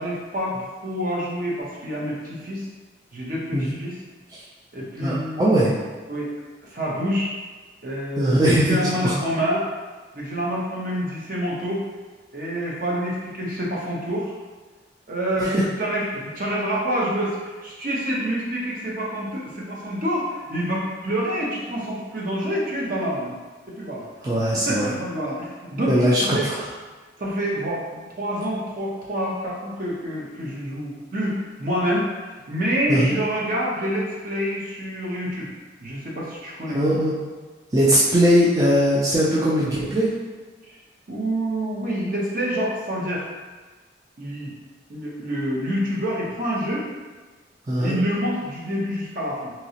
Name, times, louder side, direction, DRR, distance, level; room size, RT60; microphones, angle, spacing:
voice 1, 0.0-2.7 3.1-3.9 4.7-5.7 6.1-6.3 6.7-7.3 7.8-9.7 10.1-11.9 12.3-14.3 15.1-23.4 23.7-24.1 24.7-26.5 27.2-35.5 35.8-36.8 41.1-43.3 44.2-44.5 44.9-46.9 47.8-49.5, equal, 50° right, -5 dB, 0.8 m, -27 dB
voice 2, 5.0-5.7 8.2-9.2 15.4-15.7 24.2-24.9 25.9-26.7 32.9-33.1 36.7-37.2 37.7-40.1 47.7-48.0, equal, 20° right, -7 dB, 0.4 m, -20 dB
3.0 x 2.8 x 2.8 m, 1.3 s
head